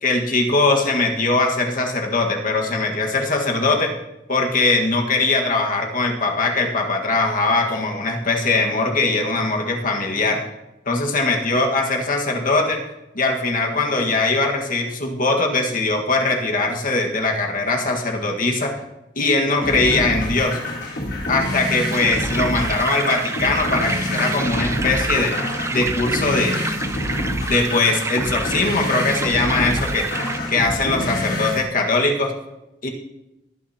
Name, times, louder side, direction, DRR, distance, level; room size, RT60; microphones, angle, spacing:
voice 1, 0.0-3.9 4.3-10.5 10.9-12.8 13.1-18.8 19.2-20.6 21.3-25.4 25.7-26.6 27.5-30.1 30.5-32.3 32.8-32.9, left 3 dB, 50° left, 2 dB, 1.7 m, -21 dB
sound 1, 19.6-31.6, left 1 dB, 65° left, 4.1 m, -27 dB
sound 2, 21.9-30.4, right 3 dB, 15° right, 0.6 m, -29 dB
21.5 x 9.6 x 2.9 m, 0.95 s
head